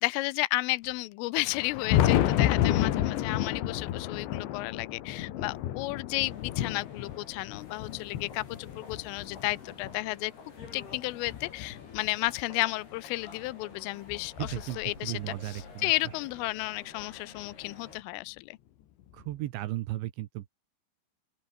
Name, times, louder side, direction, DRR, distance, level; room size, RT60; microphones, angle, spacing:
voice 1, 0.0-10.3 10.7-18.6, left 21 dB, 85° left, 3.3 m, -33 dB
Thunder, 1.4-10.0 10.6-12.3 13.5-13.6 14.1-14.2 16.1-16.2 17.5-17.6 19.2-19.3, left 12 dB, 65° left, 3.8 m, -30 dB
sound 1, 6.1-18.0, left 4 dB, 50° left, 8.7 m, -49 dB
voice 2, 14.4-15.9 19.1-20.5, right 16 dB, 75° right, 3.1 m, -35 dB
open air
omnidirectional pair, 5.9 m